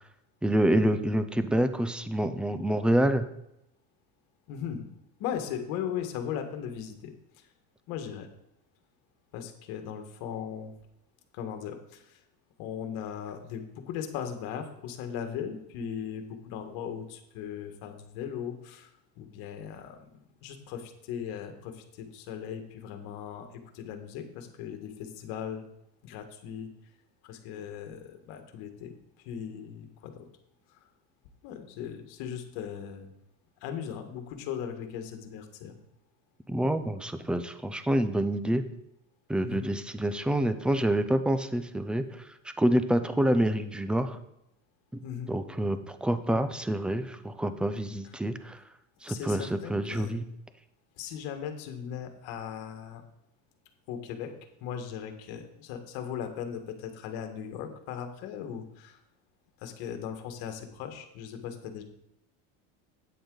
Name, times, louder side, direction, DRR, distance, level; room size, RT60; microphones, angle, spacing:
voice 1, 0.4-3.3 36.5-38.7 39.3-42.2 42.6-44.2 44.9-48.6 49.0-50.3, right 1 dB, 5° right, 11 dB, 0.4 m, -27 dB
voice 2, 4.5-4.8 5.2-7.1 7.4-7.5 7.9-8.3 9.3-10.7 11.3-12.2 12.6-18.9 19.2-20.1 20.4-25.6 26.0-26.7 27.2-28.9 29.2-30.2 30.7-30.9 31.4-33.1 33.6-35.8 39.4-39.7 45.0-45.3 48.0-48.1 49.1-50.2 51.0-53.0 53.9-54.3 54.6-59.0 59.6-61.8, left 8 dB, 65° left, 6 dB, 1.5 m, -38 dB
8.9 x 7.9 x 3.9 m, 0.82 s
supercardioid pair, 125°, 40 cm